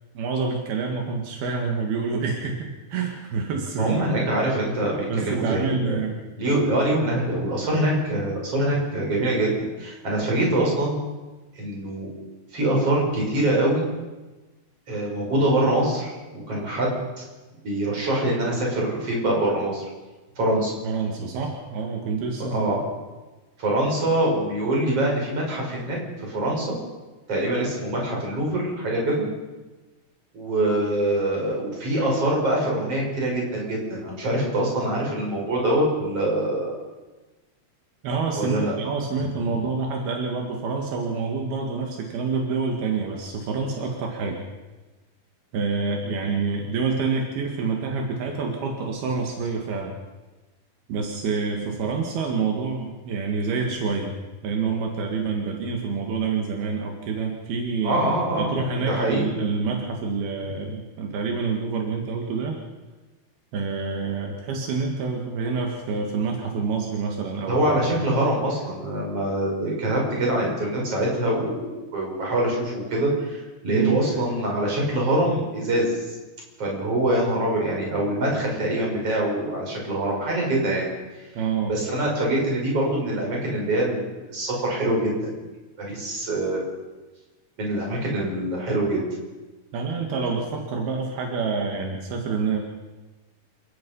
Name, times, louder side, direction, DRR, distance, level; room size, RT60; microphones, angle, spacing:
voice 1, 0.2-4.1 5.1-6.2 20.8-22.7 38.0-44.4 45.5-49.9 50.9-54.2 54.4-62.5 63.5-67.8 73.7-74.0 81.4-81.7 89.7-92.6, right 5 dB, 80° right, 1 dB, 3.9 m, -27 dB
voice 2, 3.8-6.0 6.4-9.5 9.8-11.0 11.5-12.1 12.5-13.9 14.9-17.0 17.6-19.9 20.4-20.7 22.4-22.8 23.6-26.8 27.3-29.2 30.3-36.7 38.3-38.7 57.8-59.3 67.5-76.2 76.6-80.9 81.7-85.1 85.8-86.7 87.6-89.0, right 1 dB, 40° right, -2 dB, 7.3 m, -24 dB
28.0 x 17.0 x 5.6 m, 1.2 s
omnidirectional pair, 4.4 m